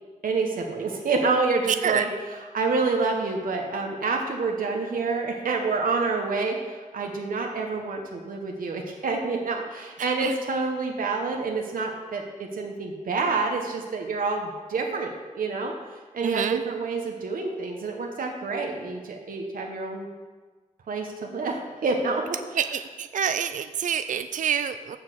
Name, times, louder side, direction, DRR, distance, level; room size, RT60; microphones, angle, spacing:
voice 1, 0.2-20.1 20.9-22.7, right 4 dB, 85° right, 1 dB, 1.0 m, -28 dB
voice 2, 16.2-16.6 22.6-25.0, right 8 dB, 65° right, 10 dB, 0.4 m, -27 dB
7.0 x 5.9 x 7.6 m, 1.4 s
wide cardioid pair, 110°, 14 cm